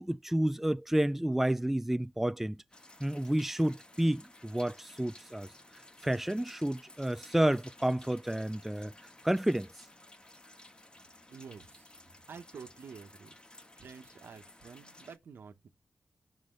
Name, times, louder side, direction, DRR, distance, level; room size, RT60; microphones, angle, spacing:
voice 1, 0.0-2.6 3.0-5.5 6.0-9.7, right 1 dB, 5° right, 0.4 m, -30 dB
sound 1, 2.7-15.2, left 1 dB, 25° left, 1.3 m, -55 dB
voice 2, 11.3-11.9 12.3-13.4 13.8-15.7, right 6 dB, 80° right, 1.2 m, -49 dB
11.5 x 5.0 x 3.9 m
cardioid pair, 50°, 4 cm